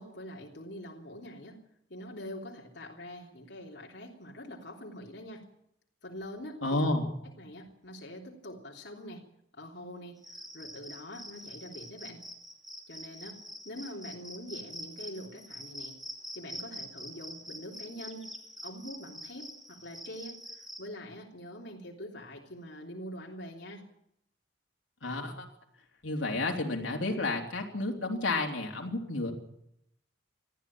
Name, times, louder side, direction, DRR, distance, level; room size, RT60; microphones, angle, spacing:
voice 1, 0.0-1.6 1.9-5.4 6.0-7.0 7.4-9.2 9.5-12.2 12.9-13.4 13.6-16.0 16.3-18.2 18.6-23.8, equal, 65° left, -1 dB, 3.3 m, -44 dB
voice 2, 6.6-7.1 25.0-25.4 26.0-29.3, left 2 dB, 85° left, 0 dB, 3.6 m, -31 dB
Cricket, 10.2-20.8, equal, ahead, 2.8 m, -45 dB
20.5 x 14.5 x 8.7 m, 0.77 s
head